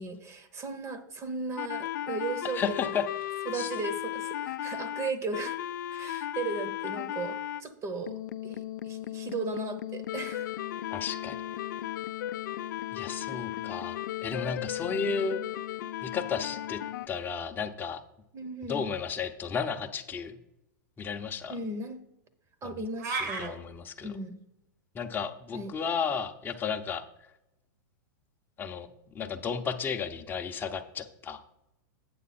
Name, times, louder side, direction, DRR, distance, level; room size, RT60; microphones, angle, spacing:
voice 1, 0.0-2.9 3.5-5.6 5.9-8.2 8.4-10.5 18.3-18.9 21.5-22.0 22.6-23.6 24.0-24.4 25.5-25.7, right 3 dB, 30° right, 11 dB, 0.9 m, -36 dB
sound 1, 1.6-7.6 8.1-17.1, left 12 dB, 70° left, 0.4 m, -35 dB
voice 2, 2.5-3.0 3.5-3.7 10.9-11.4 12.9-15.4 16.0-16.8 17.1-18.0 18.7-20.4 21.0-21.6 23.2-24.1 24.9-27.0 28.6-28.9 29.1-31.4, left 6 dB, 20° left, 4 dB, 0.7 m, -33 dB
sound 2, 23.0-23.5, right 3 dB, 75° right, 1.6 m, -32 dB
8.5 x 6.6 x 4.2 m, 0.89 s
hypercardioid pair, 120°, 10 cm